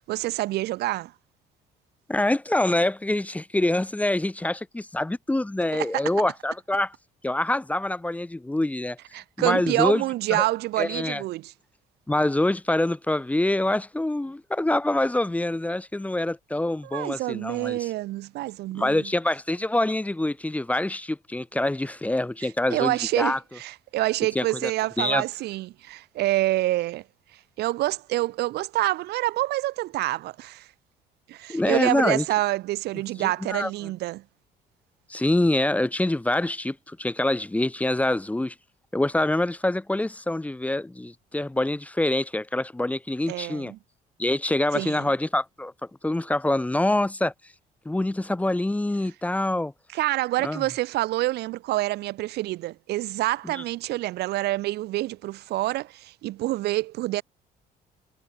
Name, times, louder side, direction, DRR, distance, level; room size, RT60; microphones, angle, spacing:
voice 1, 0.1-1.1 5.7-6.1 9.1-11.5 16.8-19.1 22.4-27.0 27.6-30.7 31.3-34.2 43.3-43.8 44.7-45.1 49.9-57.2, right 17 dB, 75° right, 0.9 m, -27 dB
voice 2, 2.1-6.9 7.2-9.0 9.4-10.0 10.3-10.4 10.8-11.2 12.1-17.9 18.7-23.4 24.3-24.7 25.0-25.2 31.5-32.2 33.2-33.7 35.1-38.5 38.9-43.7 44.2-45.7 46.0-47.3 47.8-49.7 50.4-50.6 53.6-53.7, left 1 dB, 10° left, 0.9 m, -25 dB
cardioid pair, 110°, 17 cm